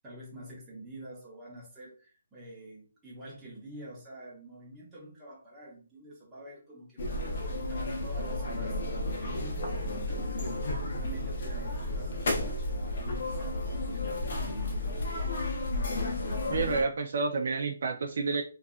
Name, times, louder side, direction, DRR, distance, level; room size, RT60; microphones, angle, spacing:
voice 1, 0.0-8.7 9.0-15.5, right 1 dB, 10° right, -6 dB, 0.8 m, -47 dB
sound 1, 7.0-16.8, left 1 dB, 45° left, 0.6 m, -32 dB
voice 2, 16.5-18.4, right 4 dB, 50° right, 4 dB, 0.3 m, -29 dB
2.6 x 2.3 x 2.3 m, 0.39 s
hypercardioid pair, 170°, 0 cm